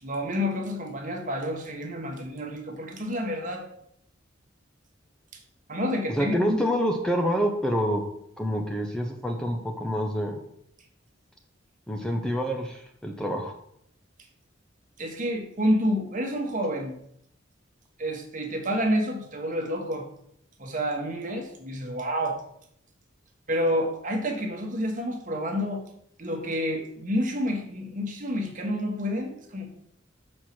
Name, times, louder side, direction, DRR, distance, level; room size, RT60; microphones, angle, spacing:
voice 1, 0.0-3.6 5.3-5.4 5.7-6.6 15.0-17.0 18.0-20.1 20.6-22.4 23.5-25.8 26.2-29.7, equal, 45° right, 2 dB, 1.4 m, -29 dB
voice 2, 6.1-8.0 8.4-10.4 11.9-13.6, equal, 5° left, 2 dB, 0.7 m, -27 dB
6.6 x 4.4 x 6.0 m, 0.72 s
head